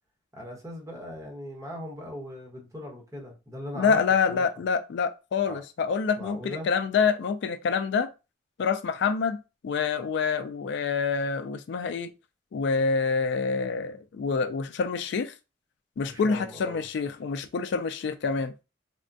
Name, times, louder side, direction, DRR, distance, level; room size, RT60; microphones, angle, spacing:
voice 1, 0.3-4.0 4.3-4.5 5.4-5.6 6.2-6.7 16.0-16.8, equal, 15° right, 1.0 m, -39 dB
voice 2, 3.8-8.1 8.6-9.4 9.6-12.1 12.5-15.3 16.0-18.5, left 5 dB, 65° left, 0.3 m, -27 dB
3.4 x 2.1 x 2.6 m
head